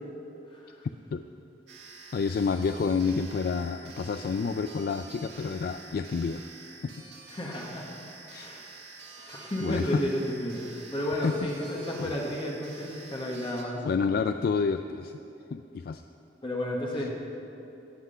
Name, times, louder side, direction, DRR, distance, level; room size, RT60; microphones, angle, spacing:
sound 1, 1.7-13.6, right 4 dB, 85° right, 1.7 m, -48 dB
voice 1, 2.1-6.5 8.3-8.5 9.6-10.0 11.2-11.5 12.0-12.1 13.8-15.1 15.5-16.0, left 5 dB, 55° left, 8 dB, 0.3 m, -29 dB
voice 2, 7.3-7.8 8.4-8.7 9.2-10.6 10.9-13.8 16.4-17.1, left 1 dB, 30° left, -2 dB, 1.3 m, -32 dB
17.5 x 6.0 x 5.6 m, 2.8 s
head